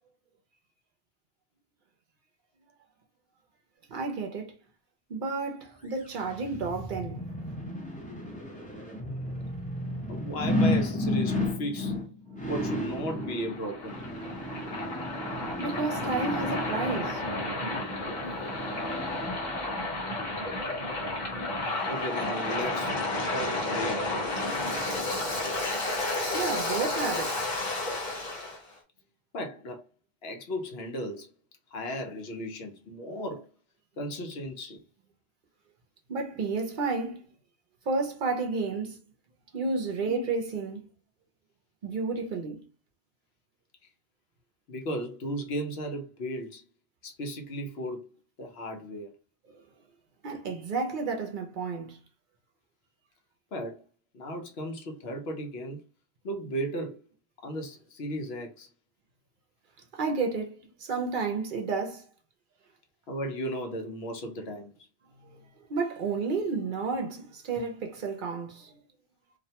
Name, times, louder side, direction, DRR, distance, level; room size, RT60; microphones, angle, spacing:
voice 1, 3.9-4.6 5.1-7.3 15.6-17.2 26.3-27.4 36.1-37.2 37.9-39.0 39.5-40.9 41.8-42.7 49.5-49.6 50.2-52.0 59.9-62.1 65.2-65.4 65.7-68.7, right 4 dB, 60° right, 0.7 m, -31 dB
sound 1, 5.9-19.8 20.3-20.4, left 1 dB, 10° left, 0.5 m, -33 dB
voice 2, 10.1-12.0 12.4-14.0 21.9-23.0 23.3-24.1 24.4-24.7 26.9-27.0 29.3-29.8 30.2-31.3 31.7-33.5 34.0-34.8 40.1-40.3 44.7-46.6 47.0-48.1 48.4-49.1 53.5-53.8 54.1-55.8 56.2-57.0 57.4-58.7 63.1-64.7, equal, 80° left, 0.9 m, -35 dB
Waves surf, 12.8-28.6, left 2 dB, 50° left, 1.0 m, -32 dB
2.5 x 2.1 x 2.8 m
omnidirectional pair, 1.0 m